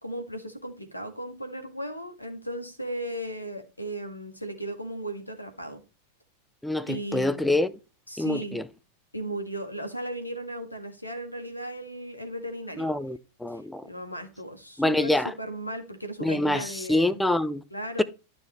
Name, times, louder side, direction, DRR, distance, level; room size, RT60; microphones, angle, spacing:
voice 1, 0.0-5.8 6.9-7.6 8.1-8.6 9.1-12.9 13.5-13.6 13.9-17.2 17.7-18.0, right 1 dB, 85° left, 1.7 m, -36 dB
voice 2, 6.6-7.7 8.2-8.7 12.8-13.9 14.8-15.3 16.2-17.6 18.0-18.1, left 1 dB, 5° left, 0.5 m, -26 dB
12.0 x 6.0 x 3.2 m
figure-of-eight pair, 90°, 0 cm